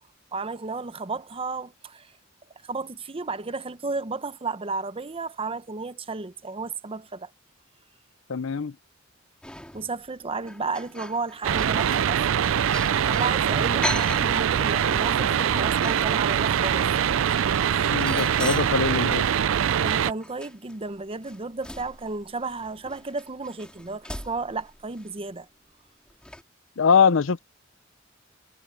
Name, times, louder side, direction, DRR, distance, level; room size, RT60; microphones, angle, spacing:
voice 1, 0.3-2.1 2.7-7.3 9.7-12.2 13.0-16.9 17.7-18.0 19.8-25.5, right 3 dB, 30° right, 0.8 m, -33 dB
voice 2, 8.3-8.7 17.9-19.3 26.8-27.4, left 6 dB, 70° left, 0.6 m, -22 dB
sound 1, 9.4-10.1 10.4-13.4 13.8-19.5 19.9-25.1 26.1-26.4, left 1 dB, 5° left, 4.2 m, -40 dB
sound 2, 11.4-20.1, right 8 dB, 75° right, 0.4 m, -23 dB
head